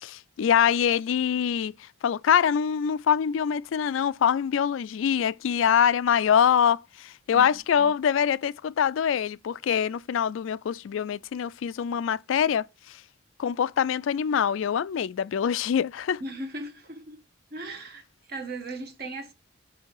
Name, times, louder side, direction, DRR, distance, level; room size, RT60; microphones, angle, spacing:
voice 1, 0.0-13.0 13.4-16.2, left 8 dB, 75° left, 0.3 m, -24 dB
voice 2, 7.3-7.9 16.2-17.2 17.5-19.3, right 2 dB, 50° right, 1.3 m, -38 dB
8.3 x 2.8 x 4.7 m
head